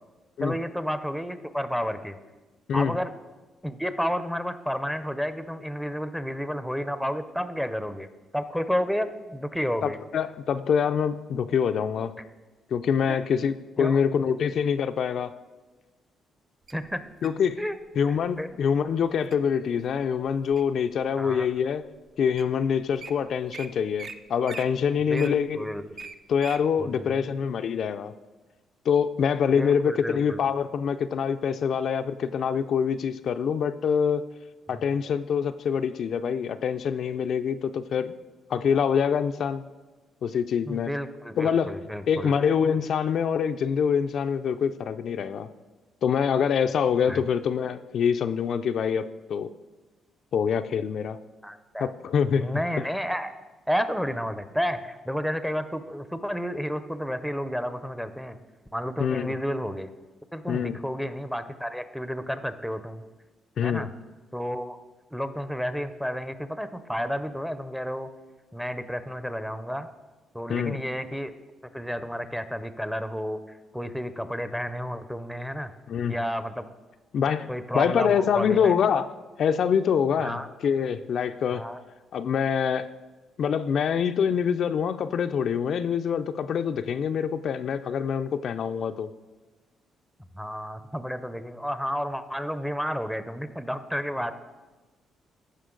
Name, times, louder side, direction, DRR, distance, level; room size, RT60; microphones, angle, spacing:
voice 1, 0.4-2.2 2.7-3.1 3.6-8.1 8.3-10.0 13.1-13.2 13.8-14.0 16.7-17.0 17.6-17.8 18.1-18.5 21.2-21.5 25.1-26.0 26.8-27.3 29.5-30.4 34.7-34.9 40.7-42.3 47.1-47.2 51.4-51.9 52.4-53.3 53.7-58.4 58.7-59.9 60.3-63.0 63.6-63.9 64.3-64.8 65.1-68.1 68.5-69.9 70.3-71.3 71.7-73.4 73.7-75.7 76.1-76.7 77.5-78.7 80.2-80.5 81.5-81.8 90.3-94.3, equal, ahead, 11 dB, 0.6 m, -31 dB
voice 2, 9.8-12.1 12.7-15.3 17.2-17.6 18.0-21.8 22.2-25.7 26.3-28.1 28.9-34.2 34.7-38.1 38.5-39.6 40.2-40.9 41.4-41.7 42.1-45.5 46.0-49.5 50.3-51.2 51.8-52.5 59.0-59.3 60.5-60.8 63.6-63.9 70.5-70.8 75.9-76.2 77.1-79.1 79.4-81.6 82.1-82.9 83.4-89.1, left 7 dB, 60° left, 9 dB, 0.3 m, -25 dB
Wild animals, 16.7-17.4 18.1-18.4 18.9-19.4 19.9-20.8 21.4-21.5 22.1-22.2 22.4-22.5 22.8-23.1 23.5-23.7 24.0-24.1 24.4-26.6 27.1-27.2, right 4 dB, 45° right, 0.5 m, -41 dB
14.5 x 5.2 x 3.8 m, 1.2 s
cardioid pair, 90°, 0 cm